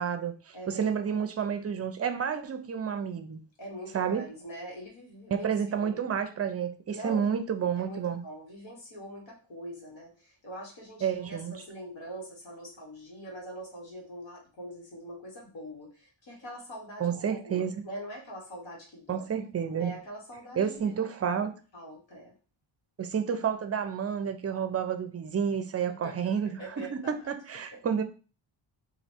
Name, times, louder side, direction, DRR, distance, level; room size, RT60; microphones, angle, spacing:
voice 1, 0.0-3.4 3.9-4.3 5.3-8.2 11.0-11.6 17.0-17.8 19.1-19.9 20.6-21.5 23.0-28.0, right 7 dB, 30° right, 0.5 m, -30 dB
voice 2, 0.5-1.2 3.6-5.5 5.7-6.0 6.9-7.3 7.8-19.2 19.8-20.9 21.7-22.3 25.9-26.3 26.6-27.1 27.7-27.8, right 1 dB, 70° left, 1.5 m, -43 dB
3.1 x 2.5 x 4.4 m
wide cardioid pair, 120°, 48 cm